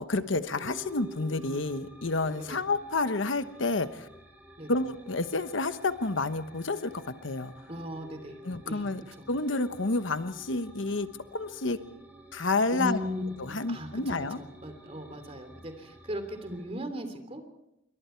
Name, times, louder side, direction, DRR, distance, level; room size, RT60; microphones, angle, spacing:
voice 1, 0.0-4.1 4.7-7.5 8.4-9.0 9.3-11.8 12.3-13.0 13.4-14.4, left 3 dB, 75° left, 10 dB, 1.1 m, -29 dB
sound 1, 0.6-16.7, equal, 10° right, 5.0 m, -51 dB
voice 2, 7.7-8.9 12.7-17.5, equal, 30° right, 7 dB, 3.2 m, -38 dB
27.5 x 23.5 x 4.6 m, 0.85 s
head